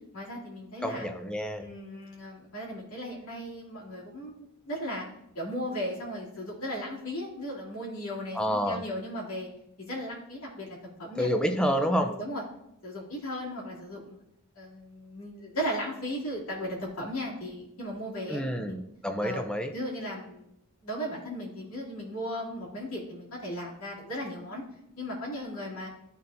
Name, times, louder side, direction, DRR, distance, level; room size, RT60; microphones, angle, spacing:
voice 1, 0.1-1.1 1.6-5.1 5.3-9.5 9.8-11.3 12.0-12.4 12.8-14.2 14.6-18.8 19.2-20.5 20.8-24.6 25.0-25.9, equal, 90° left, -4 dB, 2.6 m, -36 dB
voice 2, 0.8-1.6 8.3-8.8 11.2-12.1 18.3-19.7, equal, 5° left, 5 dB, 0.6 m, -28 dB
12.0 x 4.1 x 2.6 m, 0.81 s
head